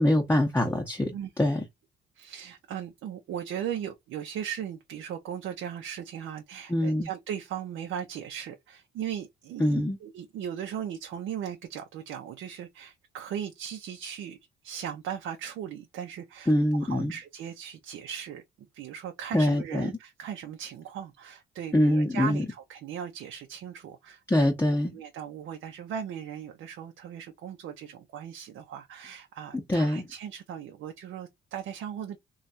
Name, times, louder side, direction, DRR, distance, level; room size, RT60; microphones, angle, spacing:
voice 1, 0.0-1.6 6.7-7.1 9.6-10.0 16.5-17.1 19.3-19.9 21.7-22.4 24.3-25.0 29.7-30.1, left 1 dB, 10° left, 0.8 m, -24 dB
voice 2, 2.2-14.4 14.6-16.5 16.8-18.4 18.7-24.5 24.9-32.2, right 9 dB, 75° right, 0.6 m, -38 dB
3.1 x 2.3 x 2.5 m
cardioid pair, 90°, 20 cm